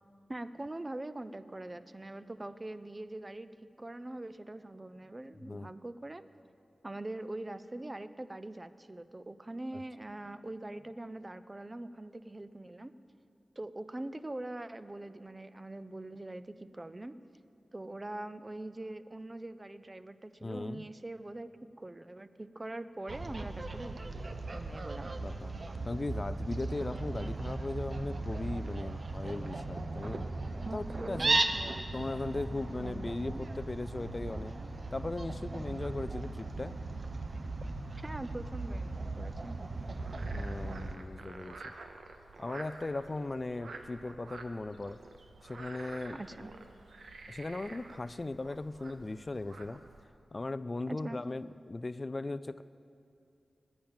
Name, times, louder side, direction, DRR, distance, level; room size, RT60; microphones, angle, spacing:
voice 1, 0.3-3.5 3.8-6.2 6.8-12.9 13.6-17.2 17.7-21.5 21.8-24.0 24.5-25.1 30.7-32.1 32.8-33.1 38.0-39.6 46.1-46.5 50.9-51.2, right 1 dB, 25° right, 12 dB, 0.5 m, -43 dB
voice 2, 20.4-20.9 25.2-25.5 25.9-30.3 30.7-31.4 31.9-34.6 34.9-36.8 40.3-41.7 42.4-45.0 45.4-46.2 47.3-49.8 50.3-52.6, left 2 dB, 40° left, 14 dB, 0.3 m, -38 dB
Fowl, 23.1-41.0, right 2 dB, 50° right, 0.8 m, -37 dB
Frog, 39.8-50.0, right 3 dB, 85° right, 0.8 m, -50 dB
10.5 x 8.8 x 8.8 m, 2.6 s
cardioid pair, 60°, 0 cm